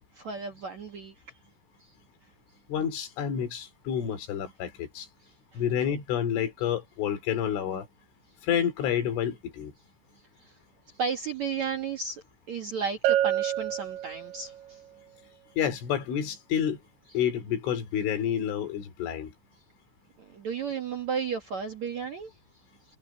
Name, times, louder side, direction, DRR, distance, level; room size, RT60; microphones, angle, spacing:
voice 1, 0.1-1.1 5.5-5.6 10.4-10.5 11.0-14.8 20.3-22.3, right 6 dB, 60° right, 2.0 m, -33 dB
voice 2, 2.7-5.1 5.5-7.9 8.4-9.7 15.6-16.8 17.1-19.3, left 9 dB, 80° left, 5.8 m, -29 dB
Bell, 13.0-14.7, right 12 dB, 80° right, 3.0 m, -27 dB
omnidirectional pair, 5.5 m